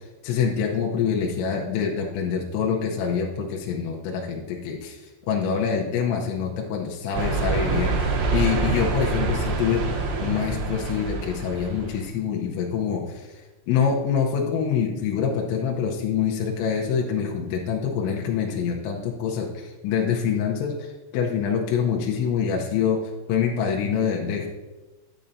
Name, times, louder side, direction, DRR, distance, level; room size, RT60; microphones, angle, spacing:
voice 1, 0.2-9.8 10.2-23.0 23.3-24.5, left 7 dB, 85° left, -1 dB, 3.0 m, -25 dB
sound 1, 7.1-12.0, right 3 dB, 70° right, 2.4 m, -26 dB
10.0 x 8.7 x 2.7 m, 1.2 s
omnidirectional pair, 5.5 m